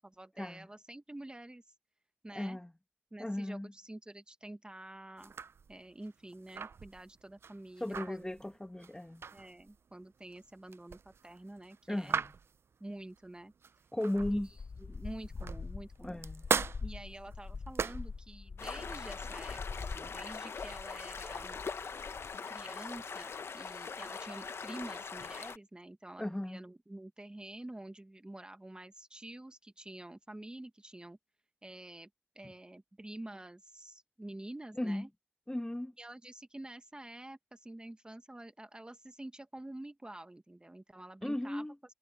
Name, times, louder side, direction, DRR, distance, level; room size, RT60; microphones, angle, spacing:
voice 1, 0.0-1.6 2.2-2.6 3.1-5.3 5.7-8.3 9.3-12.2 12.8-13.5 14.3-16.2 16.8-21.6 22.5-31.2 31.6-32.1 32.3-35.1 36.0-41.7, right 1 dB, 20° right, 1.3 m, -48 dB
voice 2, 2.3-2.7 3.2-3.7 7.8-9.2 11.9-12.3 13.9-14.5 16.0-16.5 26.2-26.6 32.4-32.5 34.8-35.1 35.5-35.9 41.2-41.7, left 1 dB, 15° left, 1.6 m, -36 dB
sound 1, 5.2-14.5 15.0-18.2, right 6 dB, 80° right, 0.3 m, -39 dB
sound 2, 14.2-22.4, left 4 dB, 55° left, 0.3 m, -44 dB
sound 3, 18.6-25.6, left 5 dB, 85° left, 0.7 m, -42 dB
wide cardioid pair, 75°, 4 cm